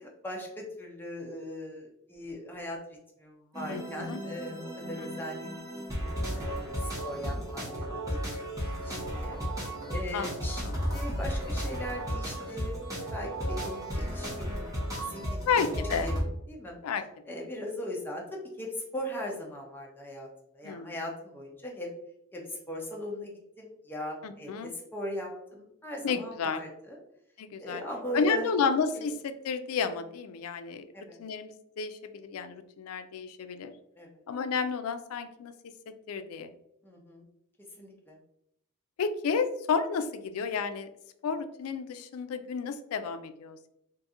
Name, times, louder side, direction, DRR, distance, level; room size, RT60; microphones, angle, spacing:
voice 1, 0.0-2.8 3.2-5.8 6.3-9.4 9.9-12.8 13.1-14.7 15.0-15.6 16.0-16.1 16.5-16.8 17.3-20.3 20.5-21.9 22.3-23.3 23.6-27.0 27.6-29.0 30.9-31.2 34.0-34.1 36.8-37.2 37.8-38.2, left 1 dB, 10° left, -1 dB, 0.6 m, -39 dB
sound 1, 3.5-16.2, equal, 15° right, 1.0 m, -34 dB
voice 2, 3.7-4.2 5.0-5.1 10.1-10.4 10.6-10.8 15.5-16.1 16.8-17.4 20.6-20.9 24.2-24.7 26.0-26.6 27.4-27.8 28.1-30.8 31.2-33.7 34.3-35.5 35.9-36.5 39.0-40.9 41.2-43.7, left 5 dB, 80° left, 10 dB, 0.4 m, -31 dB
2.8 x 2.5 x 3.6 m, 0.79 s
head